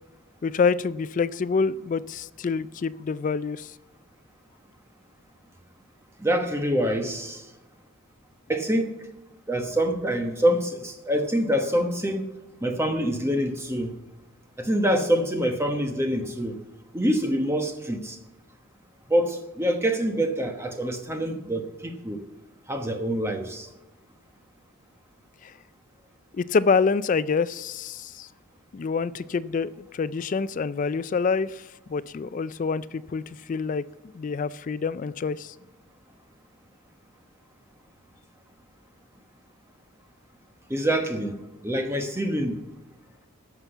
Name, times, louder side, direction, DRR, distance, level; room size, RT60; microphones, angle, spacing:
voice 1, 0.4-3.7 25.4-25.5 26.3-28.3 28.7-31.6 31.9-33.2 33.5-33.8 34.1-35.5, left 5 dB, 35° left, 17 dB, 0.3 m, -26 dB
voice 2, 6.2-7.5 8.5-8.9 9.5-12.3 12.6-13.9 14.6-16.6 16.9-18.2 19.1-22.2 22.7-23.7 40.7-41.3 41.6-42.6, equal, 10° right, 5 dB, 1.0 m, -25 dB
13.5 x 6.0 x 7.9 m, 1.0 s
head